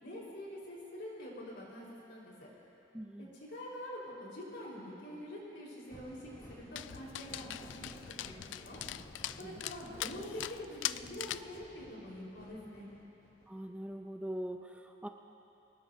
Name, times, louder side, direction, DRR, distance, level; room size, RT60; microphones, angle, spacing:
voice 1, 0.0-2.5 3.3-8.8 9.4-12.9, left 1 dB, 65° left, -5 dB, 4.5 m, -46 dB
voice 2, 2.9-3.3 9.4-9.6 13.5-15.1, right 1 dB, 5° right, 4 dB, 0.5 m, -42 dB
sound 1, 5.9-13.5, equal, 25° left, 2.8 m, -55 dB
Dog, 6.8-11.6, left 13 dB, 85° left, 0.3 m, -41 dB
24.5 x 20.0 x 2.7 m, 2.9 s
head